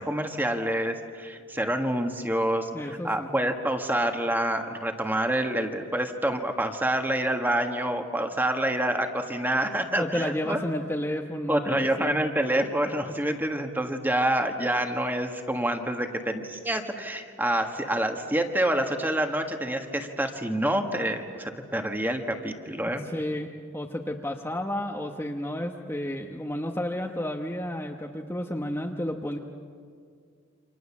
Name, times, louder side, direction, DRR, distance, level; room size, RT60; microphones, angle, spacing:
voice 1, 0.0-10.6 11.5-23.1, right 1 dB, 10° right, 5 dB, 1.6 m, -27 dB
voice 2, 2.7-3.3 9.9-12.2 23.0-29.4, left 1 dB, 10° left, 1 dB, 1.1 m, -31 dB
29.5 x 26.5 x 7.3 m, 2.2 s
head